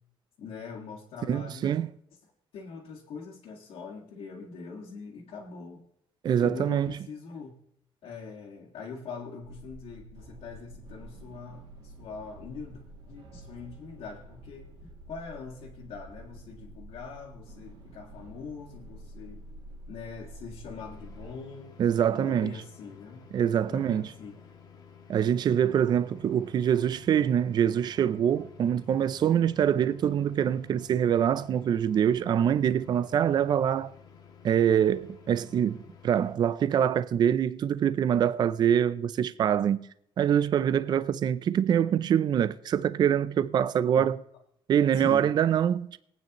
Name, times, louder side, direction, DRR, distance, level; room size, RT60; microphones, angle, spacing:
voice 1, 0.4-1.8 2.5-5.8 6.3-7.6 8.0-19.5 19.9-21.7 22.1-23.3 23.7-24.4 44.0-44.1 44.9-45.3, left 5 dB, 75° left, 2.1 m, -42 dB
voice 2, 1.3-1.9 6.2-6.9 21.8-22.5 23.3-24.1 25.1-33.9 34.4-39.8 40.2-44.2 44.7-46.0, right 9 dB, 45° right, 0.5 m, -25 dB
sound 1, 9.4-21.3, right 1 dB, 65° right, 2.6 m, -48 dB
sound 2, 20.8-36.3, left 6 dB, 40° left, 1.6 m, -53 dB
23.0 x 9.1 x 3.0 m
cardioid pair, 155°, 10 cm